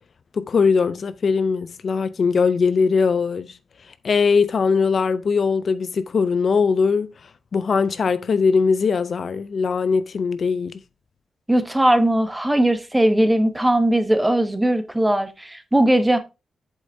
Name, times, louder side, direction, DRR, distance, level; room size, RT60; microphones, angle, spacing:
voice 1, 0.3-3.6 4.0-7.1 7.5-10.8, left 5 dB, 45° left, 0.4 m, -20 dB
voice 2, 11.5-16.2, right 1 dB, 10° right, 0.8 m, -19 dB
7.9 x 7.4 x 2.6 m
wide cardioid pair, 150°, 0 cm